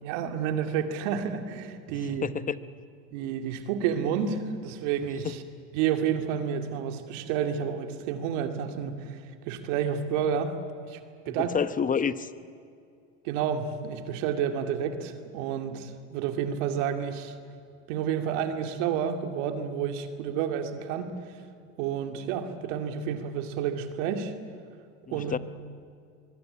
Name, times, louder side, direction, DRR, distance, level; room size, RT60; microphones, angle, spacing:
voice 1, 0.0-2.3 3.1-5.4 5.7-9.2 9.5-10.5 10.9-11.0 11.3-11.5 13.2-17.4 17.9-21.1 21.8-24.3 25.1-25.3, right 8 dB, 75° right, 6 dB, 2.6 m, -30 dB
voice 2, 2.2-2.6 11.3-12.3 25.1-25.4, left 6 dB, 20° left, 14 dB, 1.0 m, -28 dB
23.0 x 22.5 x 8.8 m, 2.4 s
supercardioid pair, 105°, 37 cm